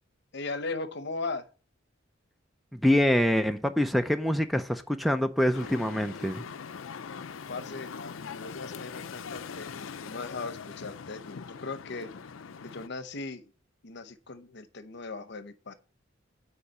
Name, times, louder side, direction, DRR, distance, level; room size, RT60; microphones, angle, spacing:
voice 1, 0.3-1.4 7.5-12.1 12.6-13.5 13.8-15.7, left 3 dB, 60° left, 0.9 m, -38 dB
voice 2, 2.7-6.4, equal, ahead, 0.5 m, -25 dB
sound 1, 5.5-12.9, left 6 dB, 85° left, 0.5 m, -42 dB
8.3 x 4.9 x 7.0 m
head